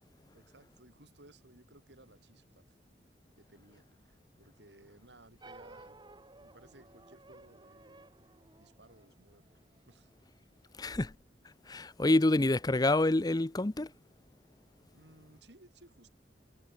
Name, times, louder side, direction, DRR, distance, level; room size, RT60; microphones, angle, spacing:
voice 1, 0.3-2.8 3.4-6.0 6.4-8.1 8.6-9.5 9.9-10.1 14.9-16.1, right 2 dB, 85° right, 7.8 m, -59 dB
sound 1, 5.4-10.0, right 2 dB, 25° right, 2.7 m, -56 dB
voice 2, 10.8-11.1 11.7-13.9, left 2 dB, 20° left, 0.6 m, -27 dB
head